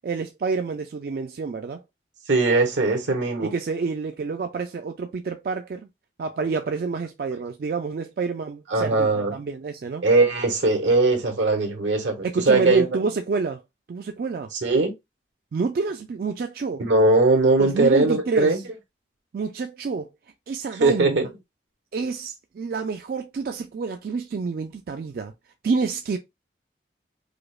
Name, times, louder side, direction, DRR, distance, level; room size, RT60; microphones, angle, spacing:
voice 1, 0.0-1.8 3.4-5.9 6.2-10.0 12.2-13.6 13.9-14.5 15.5-16.8 17.6-18.6 19.3-20.1 20.5-21.2 21.9-25.3 25.6-26.2, right 4 dB, 50° right, 0.3 m, -28 dB
voice 2, 2.3-3.5 8.7-9.3 10.0-13.0 14.5-14.9 16.8-18.6 20.8-21.3, right 3 dB, 85° right, 1.0 m, -20 dB
4.9 x 2.0 x 2.3 m
head